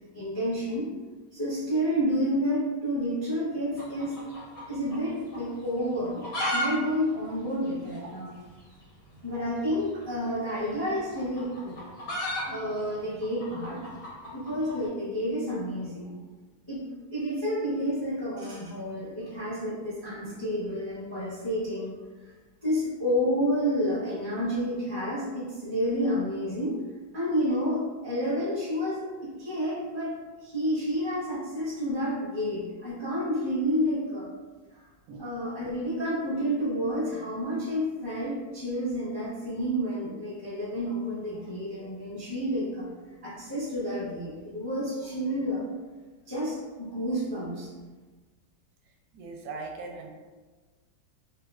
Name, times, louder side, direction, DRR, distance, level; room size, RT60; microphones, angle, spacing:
voice 1, 0.1-0.9 1.3-4.1 4.7-6.2 6.5-8.4 9.2-11.8 12.5-13.8 14.3-16.1 16.7-16.8 17.1-21.9 22.2-22.3 22.6-26.7 27.1-30.1 30.4-34.3 35.2-42.9 43.2-45.6 46.3-47.7, equal, 25° left, -9 dB, 0.5 m, -30 dB
sound 1, 3.7-5.1 5.3-5.4 6.0-6.7 6.9-7.0 7.3-7.4 8.0-8.1 9.3-9.4 10.6-14.8, equal, 90° left, 1.8 m, -33 dB
voice 2, 49.1-50.1, right 3 dB, 85° right, 2 dB, 1.4 m, -39 dB
3.4 x 2.6 x 2.4 m, 1.3 s
omnidirectional pair, 2.1 m